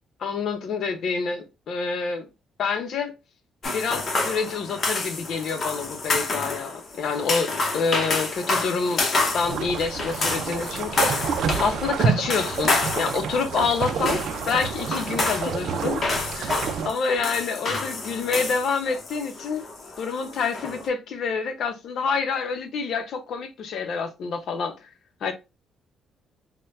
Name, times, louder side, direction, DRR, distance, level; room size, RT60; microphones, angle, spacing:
voice 1, 0.2-2.3 2.6-3.1 3.7-9.1 9.3-19.7 20.0-24.8 25.2-25.3, left 5 dB, 65° left, 0.7 m, -27 dB
sound 1, 3.6-20.9, left 3 dB, 40° left, 0.9 m, -29 dB
sound 2, 9.4-16.9, right 6 dB, 65° right, 0.4 m, -29 dB
4.3 x 2.2 x 2.5 m
cardioid pair, 130°, 0 cm